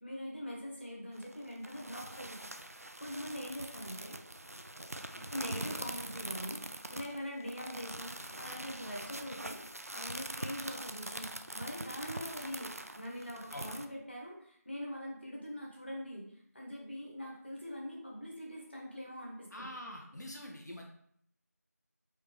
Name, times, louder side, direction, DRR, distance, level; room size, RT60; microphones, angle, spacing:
voice 1, 0.0-2.5 3.0-4.2 5.3-6.6 6.9-9.6 9.9-19.7, equal, 40° left, -3 dB, 1.3 m, -43 dB
sound 1, 1.1-13.9, right 1 dB, 60° right, 0.4 m, -43 dB
voice 2, 19.5-20.9, equal, 85° left, 0 dB, 1.0 m, -45 dB
4.9 x 2.9 x 3.5 m, 0.67 s
figure-of-eight pair, 180°, 9 cm